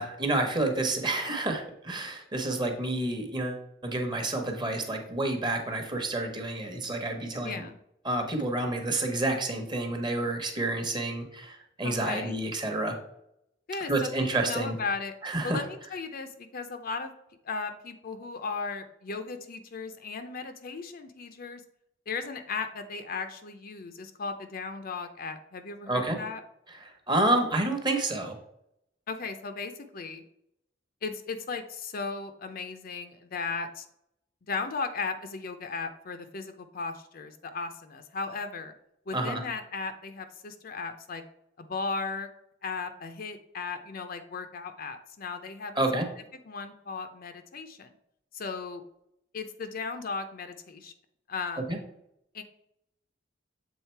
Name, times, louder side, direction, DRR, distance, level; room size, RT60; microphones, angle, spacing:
voice 1, 0.0-7.7 8.0-13.0 13.9-14.8 15.2-15.6 25.9-26.2 26.7-28.4 39.1-39.4 45.7-46.1 51.7-51.8, right 2 dB, 25° right, 4 dB, 1.0 m, -29 dB
voice 2, 7.4-7.8 11.8-12.4 13.7-15.1 15.4-17.1 17.4-21.6 22.1-26.4 29.1-30.2 31.0-33.9 34.5-38.7 39.1-41.2 41.6-42.3 42.6-45.8 46.4-47.9 48.3-48.8 49.3-50.9 51.3-51.6 52.3-52.4, left 4 dB, 50° left, 8 dB, 0.6 m, -36 dB
7.4 x 3.7 x 4.5 m, 0.78 s
head